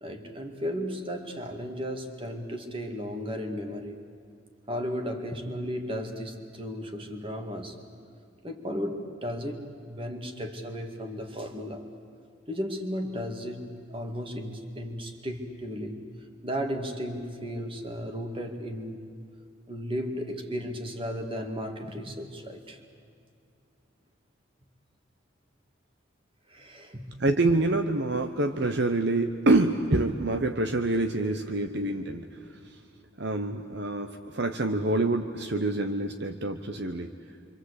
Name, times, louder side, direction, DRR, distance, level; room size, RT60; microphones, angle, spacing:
voice 1, 0.0-4.0 4.7-7.8 8.4-11.9 12.5-16.0 16.4-19.0 19.7-22.8 26.5-27.1, equal, 25° right, 5 dB, 2.2 m, -35 dB
voice 2, 27.2-32.3 32.6-32.8 33.2-37.1, right 2 dB, 55° right, 7 dB, 1.0 m, -26 dB
27.5 x 25.5 x 8.2 m, 2.5 s
head